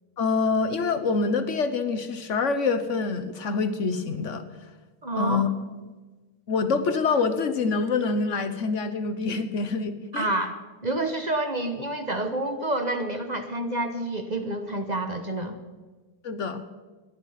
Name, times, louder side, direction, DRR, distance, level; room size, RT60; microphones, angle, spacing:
voice 1, 0.2-4.4 5.2-5.5 6.5-10.3 16.2-16.6, left 4 dB, 55° left, 10 dB, 0.8 m, -26 dB
voice 2, 5.0-5.4 10.1-10.6 10.8-15.6, right 2 dB, 35° right, 6 dB, 0.7 m, -28 dB
18.0 x 11.0 x 5.7 m, 1.3 s
omnidirectional pair, 2.4 m